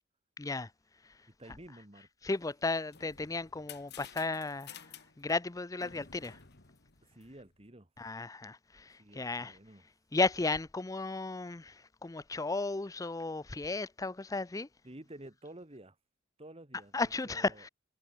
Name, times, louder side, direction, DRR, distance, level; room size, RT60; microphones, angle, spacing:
voice 1, 0.4-0.7 2.2-4.8 5.2-6.4 8.0-8.6 9.2-9.5 10.1-11.7 12.0-14.7 16.9-17.7, left 3 dB, 15° left, 0.5 m, -34 dB
voice 2, 1.4-2.3 7.0-7.9 9.0-9.9 14.8-16.0 16.4-17.7, right 1 dB, 30° right, 2.1 m, -51 dB
sound 1, 2.6-7.6, left 8 dB, 55° left, 2.0 m, -53 dB
head